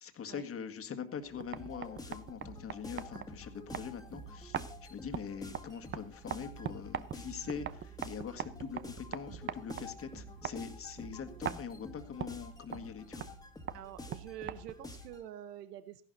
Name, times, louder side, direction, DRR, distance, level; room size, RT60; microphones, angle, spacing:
voice 1, 0.0-13.3, left 7 dB, 30° left, 6 dB, 1.8 m, -43 dB
sound 1, 1.2-15.0, right 9 dB, 25° right, 0.7 m, -44 dB
sound 2, 1.6-15.3, left 2 dB, 10° left, 1.9 m, -49 dB
voice 2, 13.7-16.0, right 11 dB, 80° right, 15 dB, 0.9 m, -46 dB
15.0 x 11.5 x 4.0 m, 0.41 s
hypercardioid pair, 90°, 47 cm